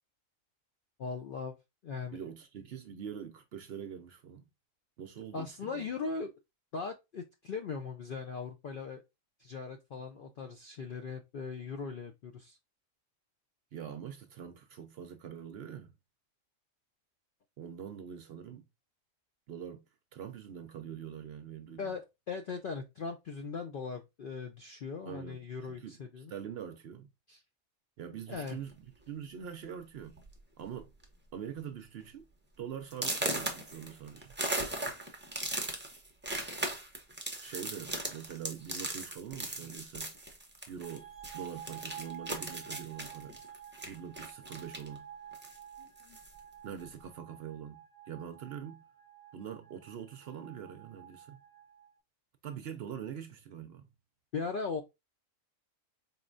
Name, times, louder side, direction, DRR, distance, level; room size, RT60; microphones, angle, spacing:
voice 1, 1.0-1.6 1.8-2.2 5.3-6.3 6.7-9.0 9.4-12.6 21.8-26.3 27.3-27.4 28.3-28.6 54.3-54.8, left 4 dB, 65° left, 0.5 m, -39 dB
voice 2, 2.1-4.4 5.0-5.9 13.7-15.9 17.6-18.7 19.5-19.8 20.1-22.0 25.1-27.1 28.0-30.2 30.6-30.9 31.3-32.2 32.6-34.3 37.4-40.1 40.7-43.4 43.8-45.1 46.6-48.8 49.3-51.4 52.4-53.8, right 8 dB, 65° right, 0.7 m, -44 dB
sound 1, 28.4-28.7 29.5-29.6 30.0-30.3 30.6-31.0 31.5-31.6 32.1-32.2 32.9-41.0 41.2-45.0 45.3-46.4, right 1 dB, 15° right, 0.5 m, -38 dB
sound 2, 40.8-51.9, right 10 dB, 30° left, 0.7 m, -51 dB
4.3 x 3.1 x 2.4 m
omnidirectional pair, 1.4 m